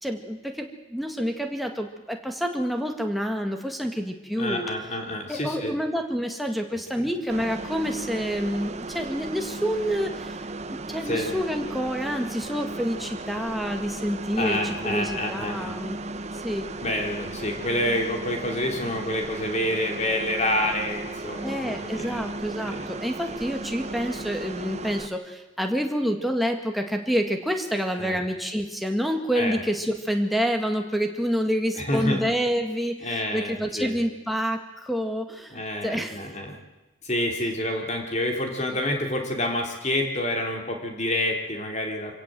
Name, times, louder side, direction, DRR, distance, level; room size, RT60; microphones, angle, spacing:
voice 1, 0.0-4.7 5.3-10.4 10.7-16.0 16.3-16.7 21.4-36.2, equal, ahead, 3 dB, 1.9 m, -28 dB
voice 2, 4.4-5.7 6.7-7.1 11.1-11.3 14.4-15.7 16.8-22.3 22.7-22.9 23.3-23.4 28.0-28.2 29.3-29.6 31.8-32.2 33.0-34.0 35.5-36.6 37.0-42.2, left 1 dB, 35° left, 2 dB, 3.2 m, -28 dB
sound 1, 7.3-25.1, right 2 dB, 35° right, 0.9 m, -35 dB
25.5 x 17.0 x 7.6 m, 1.1 s
head